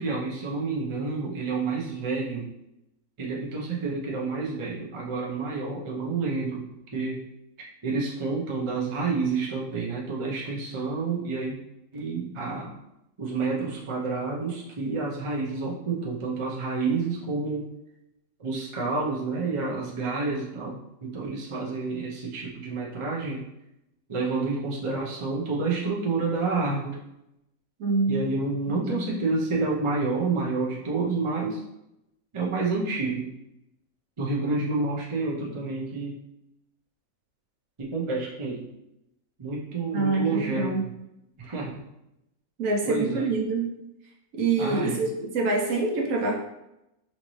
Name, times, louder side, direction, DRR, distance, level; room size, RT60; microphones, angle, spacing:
voice 1, 0.0-2.5 3.2-7.2 7.6-11.6 11.9-12.7 13.2-17.7 18.4-23.5 24.1-27.0 28.1-31.6 32.3-33.3 34.2-36.2 37.8-38.7 39.4-40.9 41.4-41.8 42.8-43.3 44.6-45.0, right 3 dB, 40° right, -3 dB, 0.4 m, -29 dB
voice 2, 27.8-28.3 28.7-29.0 39.9-40.8 42.6-43.8 44.3-46.4, right 3 dB, 65° right, 0 dB, 1.0 m, -26 dB
4.3 x 2.7 x 3.0 m, 0.86 s
omnidirectional pair, 1.6 m